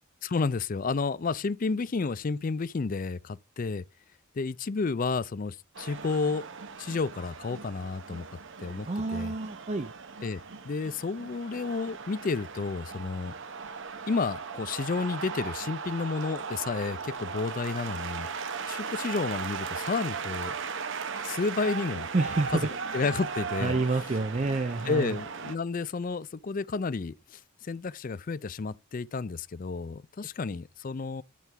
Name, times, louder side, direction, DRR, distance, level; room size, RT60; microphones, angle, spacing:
voice 1, 0.2-3.8 4.3-6.4 6.8-8.3 8.6-9.3 10.2-13.3 14.1-18.3 18.7-20.5 21.2-22.1 22.5-22.6 22.9-23.8 24.9-31.2, left 4 dB, 40° left, 0.4 m, -31 dB
sound 1, 5.7-25.6, right 5 dB, 55° right, 0.7 m, -37 dB
voice 2, 8.9-9.9 22.1-23.0 23.6-25.2, right 3 dB, 30° right, 0.5 m, -29 dB
11.0 x 3.8 x 5.6 m
head